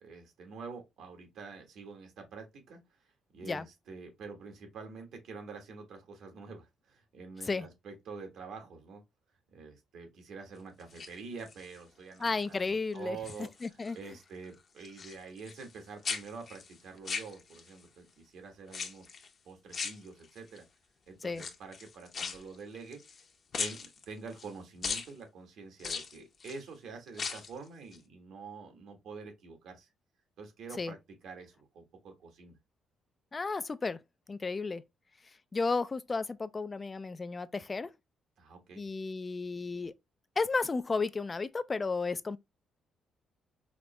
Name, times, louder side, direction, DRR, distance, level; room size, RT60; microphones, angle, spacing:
voice 1, 0.0-2.8 3.3-9.0 9.5-19.1 19.4-20.6 21.1-23.0 23.6-29.9 30.4-31.0 31.2-32.5 38.4-38.8, right 4 dB, 75° right, 1.4 m, -47 dB
sound 1, 10.8-11.8 12.3-12.7 13.0-14.0 14.2-17.8 18.7-19.3 19.7-20.6 21.3-23.2 23.5-24.5 24.8-25.1 25.8-26.6 27.1-27.6 27.9-28.0, left 5 dB, 45° left, 0.8 m, -39 dB
voice 2, 12.2-13.2 13.6-14.0 21.2-21.4 30.8-30.9 33.3-34.0 34.3-34.8 35.5-37.9 38.8-39.9 40.4-42.4, left 4 dB, 30° left, 0.3 m, -33 dB
5.0 x 2.0 x 3.2 m
cardioid pair, 90°, 0 cm